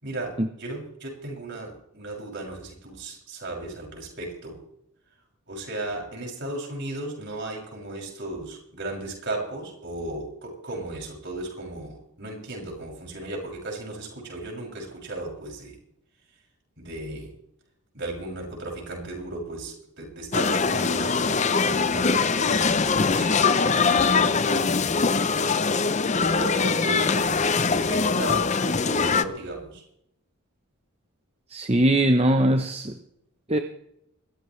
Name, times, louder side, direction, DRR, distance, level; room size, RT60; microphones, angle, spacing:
voice 1, 0.0-4.6 5.5-15.8 16.8-17.3 17.9-21.4 21.6-23.4 23.8-25.6 26.1-29.8, right 2 dB, 50° right, -1 dB, 6.7 m, -35 dB
sound 1, 20.3-29.2, left 5 dB, 30° left, 0.6 m, -22 dB
voice 2, 31.5-32.9 33.5-33.6, right 1 dB, 25° right, 7 dB, 0.8 m, -21 dB
21.5 x 15.0 x 3.2 m, 0.75 s
head